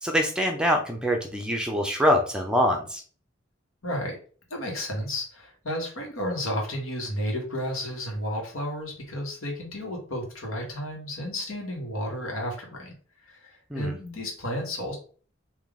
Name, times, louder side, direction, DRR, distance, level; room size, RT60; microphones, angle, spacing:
voice 1, 0.0-3.0 13.7-13.9, equal, 5° right, 3 dB, 0.5 m, -24 dB
voice 2, 3.8-4.2 4.5-12.9 13.3-15.0, equal, 90° left, 0 dB, 1.5 m, -32 dB
3.7 x 2.7 x 3.7 m, 0.42 s
head